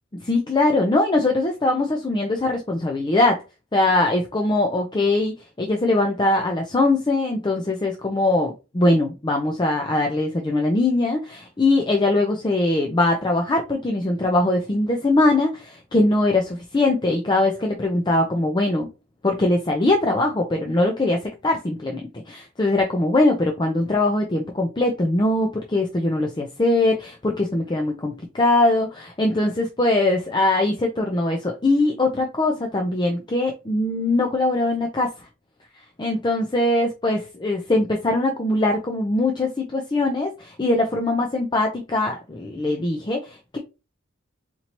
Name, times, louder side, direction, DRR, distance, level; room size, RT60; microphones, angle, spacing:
voice 1, 0.1-3.4 3.7-18.9 19.2-35.1 36.0-43.6, left 2 dB, 20° left, 2 dB, 0.5 m, -21 dB
4.4 x 2.7 x 2.9 m, 0.27 s
head